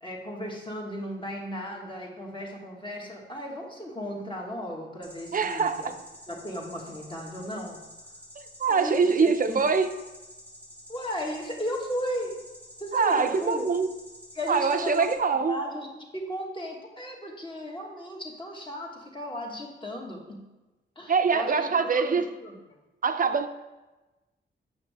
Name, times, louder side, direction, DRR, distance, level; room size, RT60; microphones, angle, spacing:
voice 1, 0.0-5.9 6.3-7.9 8.7-9.7 10.9-12.4 12.8-13.7 14.3-15.1 15.5-20.5 20.9-22.5, equal, 25° left, -1 dB, 1.6 m, -35 dB
sound 1, 5.0-15.1, left 1 dB, 5° left, 1.1 m, -49 dB
voice 2, 5.3-5.9 8.6-9.9 12.9-13.9 14.5-15.6 21.1-22.3 23.0-23.5, right 5 dB, 45° right, 8 dB, 0.6 m, -24 dB
8.3 x 6.4 x 3.4 m, 1.1 s
wide cardioid pair, 100°, 20 cm